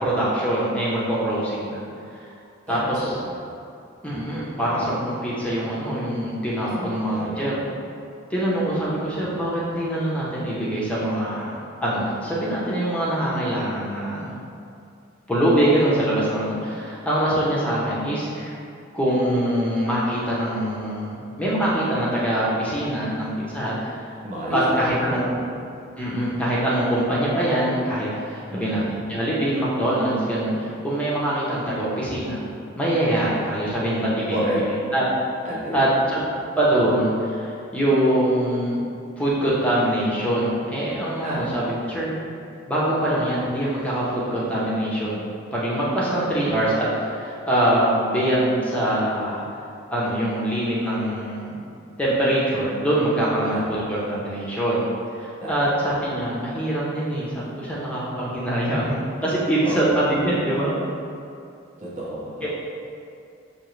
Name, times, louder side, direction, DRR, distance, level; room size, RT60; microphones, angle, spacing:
voice 1, 0.0-1.8 2.7-3.2 4.0-7.5 8.3-14.4 15.3-18.6 18.9-24.2 24.5-25.3 26.0-32.5 32.7-35.0 35.7-36.2 36.6-38.8 39.2-42.1 42.7-49.4 49.9-51.6 52.0-54.9 55.2-60.8 62.4-62.5, right 1 dB, 5° left, -7 dB, 0.7 m, -24 dB
voice 2, 2.7-3.4 6.6-7.5 8.6-9.3 24.2-25.6 28.5-28.9 34.3-34.6 35.4-35.9 36.3-36.4 41.2-41.6 46.2-46.5 53.5-53.8 55.4-56.0 59.6-60.2 61.8-62.5, equal, 35° right, -7 dB, 0.7 m, -31 dB
6.0 x 2.8 x 3.1 m, 2.5 s
head